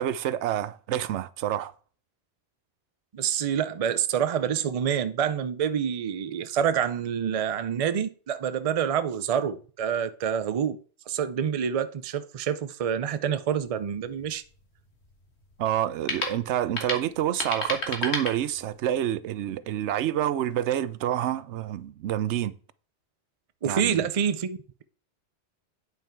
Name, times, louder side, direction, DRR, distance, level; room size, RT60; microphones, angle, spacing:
voice 1, 0.0-1.7 15.6-22.6 23.6-24.1, right 11 dB, 90° right, 0.9 m, -28 dB
voice 2, 3.1-10.8 11.1-14.4 23.6-24.8, right 8 dB, 45° right, 0.5 m, -27 dB
sound 1, 13.6-19.0, left 3 dB, 70° left, 1.8 m, -35 dB
9.1 x 5.7 x 4.5 m
omnidirectional pair, 1.1 m